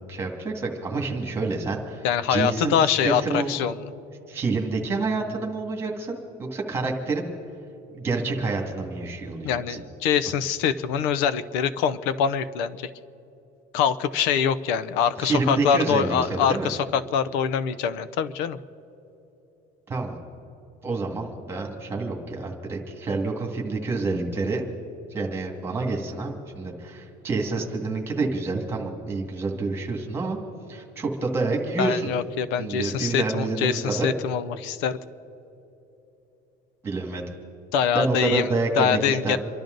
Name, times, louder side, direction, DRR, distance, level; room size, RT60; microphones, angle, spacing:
voice 1, 0.1-3.5 4.3-7.3 7.9-9.8 15.2-16.7 19.9-20.2 20.8-24.6 25.1-30.4 30.7-32.1 32.6-34.1 36.8-37.2 37.9-39.4, right 3 dB, 15° right, 0 dB, 2.1 m, -28 dB
voice 2, 2.0-3.7 9.4-12.8 13.7-18.6 31.8-35.0 37.7-39.4, left 7 dB, 85° left, 15 dB, 0.7 m, -24 dB
28.5 x 12.0 x 3.9 m, 3.0 s
cardioid pair, 180°, 19 cm